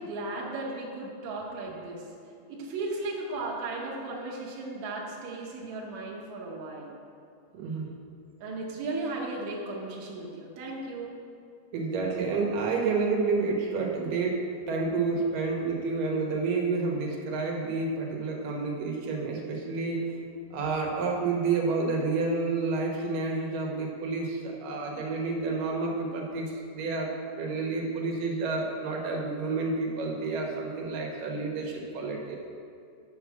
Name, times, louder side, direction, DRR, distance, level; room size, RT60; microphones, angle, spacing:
voice 1, 0.0-2.1 2.5-6.9 8.4-11.2, right 2 dB, 70° right, -3 dB, 2.2 m, -36 dB
voice 2, 7.5-7.9 11.7-20.2 20.5-32.4, right 4 dB, 90° right, -1 dB, 2.8 m, -29 dB
6.6 x 5.9 x 7.2 m, 2.5 s
omnidirectional pair, 3.7 m